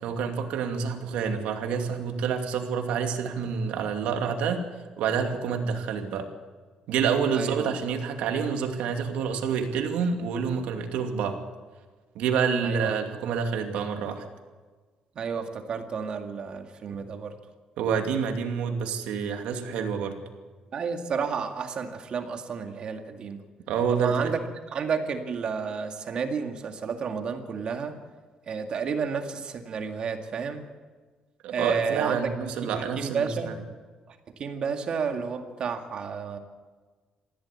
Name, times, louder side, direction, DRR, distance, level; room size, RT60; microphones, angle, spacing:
voice 1, 0.0-4.7 5.0-6.3 6.9-11.4 12.1-14.3 17.8-20.2 23.7-24.3 31.4-33.5, right 6 dB, 90° right, 4 dB, 2.6 m, -28 dB
voice 2, 7.3-7.7 12.6-13.0 15.2-17.4 20.7-23.4 23.9-28.0 28.5-30.7 31.5-32.3 32.8-33.6 34.1-36.4, right 6 dB, 50° right, 5 dB, 2.1 m, -31 dB
20.0 x 15.5 x 8.4 m, 1.4 s
cardioid pair, 120°, 2 cm